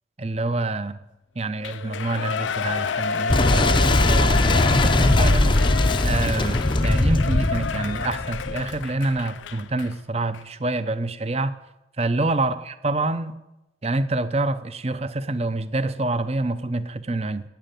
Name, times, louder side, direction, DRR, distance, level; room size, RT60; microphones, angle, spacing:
voice 1, 0.2-1.0 1.4-5.5 6.0-11.5 12.0-13.3 13.8-17.4, right 2 dB, 35° right, 12 dB, 0.7 m, -27 dB
Shout / Cheering, 1.6-9.9 10.3-10.4, left 5 dB, 85° left, 0.6 m, -29 dB
Boom, 3.3-8.9, left 2 dB, 25° left, 0.6 m, -20 dB
12.0 x 8.9 x 9.1 m, 0.95 s
head